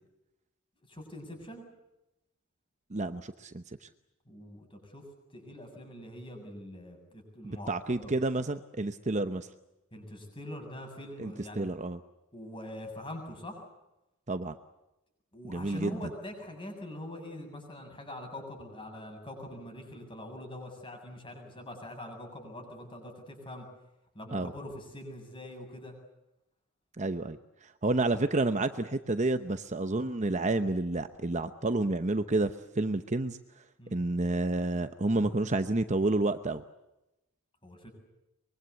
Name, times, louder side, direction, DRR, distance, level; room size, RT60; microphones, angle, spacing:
voice 1, 0.9-1.6 4.3-5.0 5.3-8.1 9.9-11.7 12.3-13.6 15.3-23.7 24.1-25.9 33.8-34.0 37.6-37.9, left 1 dB, 25° left, 4 dB, 7.5 m, -43 dB
voice 2, 2.9-3.6 7.4-9.5 11.2-12.0 14.3-14.6 15.4-16.1 24.3-24.5 27.0-33.4 33.9-36.6, right 2 dB, 35° right, 9 dB, 0.9 m, -30 dB
24.5 x 23.0 x 8.3 m, 0.92 s
head